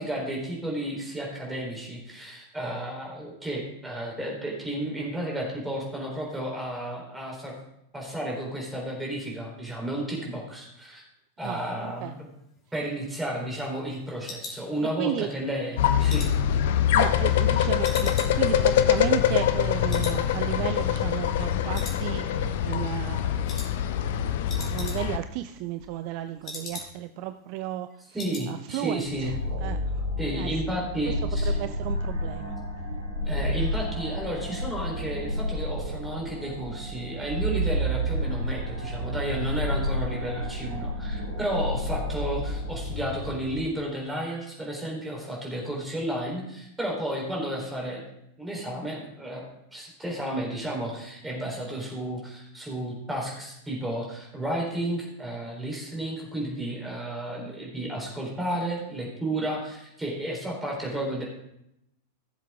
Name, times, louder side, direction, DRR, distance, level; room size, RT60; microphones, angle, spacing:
voice 1, 0.0-7.5 7.9-11.0 11.4-12.3 12.7-16.3 28.1-29.4 30.2-31.6 33.3-48.0 48.4-61.2, right 1 dB, 5° right, -2 dB, 3.8 m, -32 dB
sound 1, 12.6-15.3 15.7-17.5 17.8-19.6 19.9-20.2 20.5-20.6 21.1-21.5 21.7-22.5 22.8-23.1 23.5-23.7 24.0-24.1 24.3-25.3 25.6-27.2 27.5-27.6 27.9-28.5 28.8-29.0 29.3-29.4, left 3 dB, 25° left, 2.7 m, -41 dB
sound 2, 15.8-25.2, left 10 dB, 55° left, 0.6 m, -24 dB
voice 2, 16.9-22.2 22.6-24.2 24.5-27.9 28.5-29.3 29.6-29.8 30.3-30.5 31.5-32.6, right 13 dB, 45° right, 10 dB, 0.4 m, -33 dB
sound 3, 29.0-43.6, equal, 80° right, 4.4 m, -30 dB
15.5 x 7.4 x 3.6 m, 0.81 s
figure-of-eight pair, 90°, 0 cm